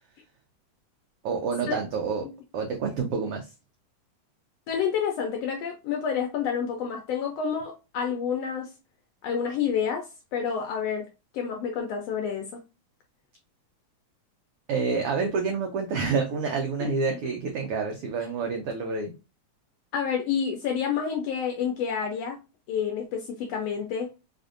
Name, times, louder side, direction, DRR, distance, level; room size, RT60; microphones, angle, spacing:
voice 1, 1.2-2.3 2.5-3.4 14.7-19.1, right 5 dB, 90° right, 1.3 m, -28 dB
voice 2, 4.7-8.7 9.2-11.0 11.3-12.6 16.8-16.9 19.9-22.4 22.7-24.1, left 7 dB, 75° left, 1.5 m, -29 dB
4.8 x 2.5 x 2.5 m
omnidirectional pair, 3.4 m